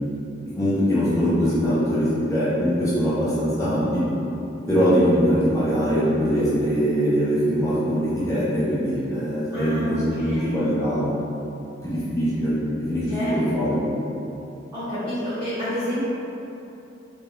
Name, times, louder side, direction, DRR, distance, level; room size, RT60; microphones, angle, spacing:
voice 1, 0.6-4.0 4.7-11.0 11.8-12.6 12.9-13.1 13.5-13.8, equal, 15° left, -11 dB, 0.8 m, -22 dB
voice 2, 9.5-10.6 13.1-13.6 14.7-16.0, equal, 20° right, -14 dB, 1.2 m, -29 dB
3.8 x 3.4 x 2.6 m, 2.8 s
head